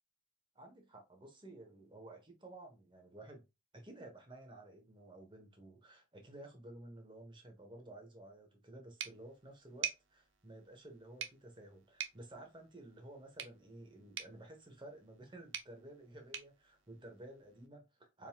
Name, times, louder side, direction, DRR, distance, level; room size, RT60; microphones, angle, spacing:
voice 1, 0.5-3.5 3.7-18.3, right 1 dB, 25° right, 1.2 m, -53 dB
sound 1, 9.0-17.7, right 9 dB, 65° right, 0.7 m, -48 dB
4.4 x 3.9 x 2.4 m
head